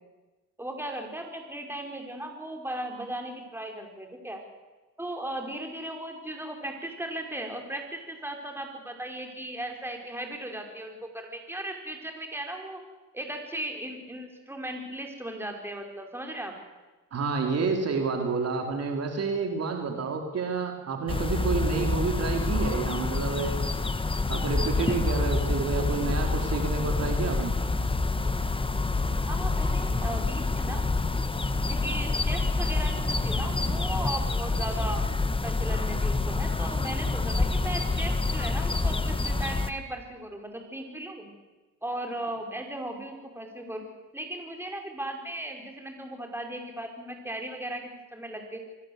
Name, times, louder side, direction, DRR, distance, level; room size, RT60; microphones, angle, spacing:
voice 1, 0.6-4.4 5.0-12.8 13.1-16.5 29.3-30.8 31.7-35.1 35.4-41.3 41.8-43.8 44.1-48.6, right 1 dB, 10° right, 3 dB, 5.5 m, -37 dB
voice 2, 17.1-23.6 24.3-27.5, right 4 dB, 55° right, 4 dB, 3.8 m, -29 dB
sound 1, 21.1-39.7, left 3 dB, 15° left, 1.5 m, -27 dB
25.5 x 20.0 x 8.2 m, 1.2 s
cardioid pair, 90°, 30 cm